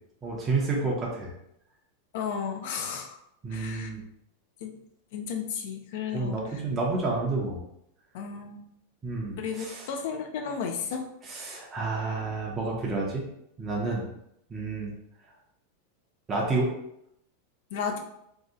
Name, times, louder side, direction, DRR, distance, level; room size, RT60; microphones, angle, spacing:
voice 1, 0.2-1.3 3.4-4.0 6.1-7.6 9.0-9.9 11.2-13.3 13.6-14.1 14.5-14.9 16.3-16.7, right 3 dB, 15° right, -3 dB, 0.6 m, -30 dB
voice 2, 2.1-3.2 3.5-3.9 4.6-4.7 5.1-6.4 8.1-8.6 9.4-11.1 17.7-18.0, left 6 dB, 55° left, 4 dB, 0.4 m, -33 dB
2.7 x 2.0 x 3.6 m, 0.78 s
supercardioid pair, 160°, 0 cm